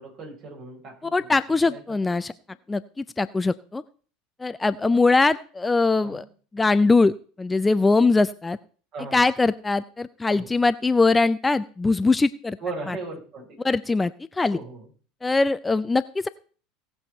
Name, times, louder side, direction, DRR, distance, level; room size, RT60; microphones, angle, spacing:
voice 1, 0.0-1.4 1.7-1.8 2.1-2.2 6.0-6.3 8.9-9.2 10.3-10.5 12.6-13.6 14.5-14.8, right 3 dB, 45° right, 0 dB, 5.4 m, -37 dB
voice 2, 1.0-2.3 2.7-3.8 4.4-6.2 6.5-7.1 7.4-8.6 9.1-12.6 12.9-13.0 13.6-14.6 15.2-16.3, left 3 dB, 15° left, 14 dB, 0.5 m, -21 dB
18.0 x 7.0 x 4.5 m, 0.41 s
figure-of-eight pair, 75°, 0 cm